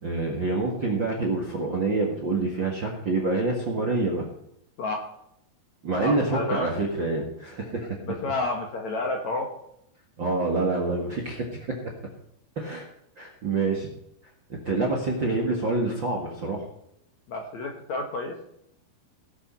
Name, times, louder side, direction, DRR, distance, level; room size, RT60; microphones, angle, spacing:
voice 1, 0.0-4.2 5.8-8.0 10.2-11.7 12.5-12.9 13.1-13.9 14.5-16.6, right 3 dB, 45° right, 1 dB, 1.6 m, -27 dB
voice 2, 4.8-5.1 5.9-6.7 8.1-9.5 17.3-18.4, left 2 dB, 60° left, 2 dB, 2.1 m, -30 dB
17.5 x 7.9 x 5.6 m, 0.76 s
omnidirectional pair, 4.8 m